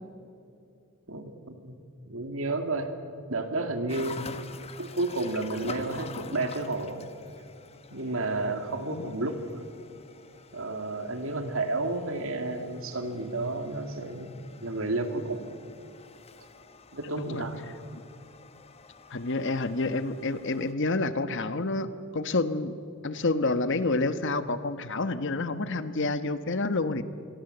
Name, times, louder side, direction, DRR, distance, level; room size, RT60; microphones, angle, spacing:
voice 1, 1.1-1.8 2.0-2.9 3.3-4.3 4.8-7.0 7.9-9.6 10.5-15.5 16.9-17.6, right 2 dB, 65° right, 7 dB, 2.5 m, -31 dB
sound 1, 3.9-20.7, left 4 dB, 30° left, 1.2 m, -47 dB
voice 2, 19.1-22.7 23.0-27.0, left 2 dB, 55° left, 12 dB, 1.2 m, -28 dB
27.0 x 22.0 x 8.0 m, 2.6 s
head